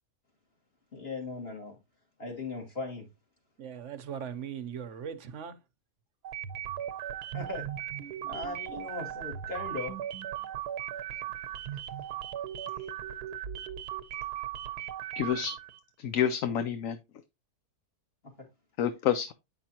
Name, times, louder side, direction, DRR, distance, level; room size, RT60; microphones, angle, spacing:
voice 1, 0.9-1.7 2.2-3.1 7.3-7.7 8.3-10.0, left 2 dB, 40° left, 2.7 m, -38 dB
voice 2, 3.6-5.6, right 8 dB, 60° right, 0.9 m, -39 dB
sound 1, 6.2-15.8, right 11 dB, 90° right, 1.3 m, -38 dB
voice 3, 15.1-15.5 16.0-17.0 18.8-19.3, left 9 dB, 65° left, 1.0 m, -28 dB
8.7 x 5.9 x 2.8 m
omnidirectional pair, 1.6 m